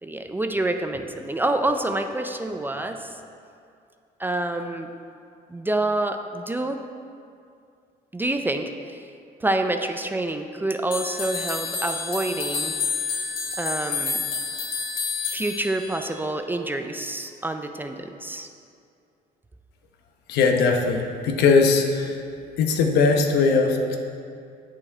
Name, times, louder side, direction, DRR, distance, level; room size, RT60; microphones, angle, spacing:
voice 1, 0.0-3.2 4.2-4.9 5.5-6.8 8.1-9.1 9.4-12.8 13.6-14.2 15.3-18.5, right 2 dB, 10° right, 6 dB, 0.4 m, -27 dB
sound 1, 10.9-16.1, left 5 dB, 60° left, 1.5 m, -29 dB
voice 2, 20.3-22.2 22.6-24.0, left 4 dB, 80° left, 3 dB, 0.9 m, -20 dB
8.7 x 6.3 x 4.3 m, 2.4 s
cardioid pair, 110°, 17 cm